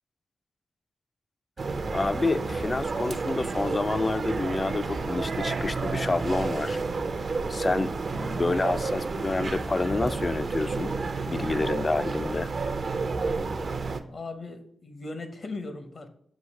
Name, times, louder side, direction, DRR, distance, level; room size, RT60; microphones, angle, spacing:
sound 1, 1.6-14.0, right 4 dB, 55° right, 0.5 m, -30 dB
voice 1, 1.9-6.8 7.5-11.0 11.3-12.5, left 3 dB, 35° left, 0.3 m, -28 dB
voice 2, 14.1-16.1, left 3 dB, 55° left, 0.8 m, -38 dB
6.3 x 2.8 x 5.3 m
cardioid pair, 65°, 0 cm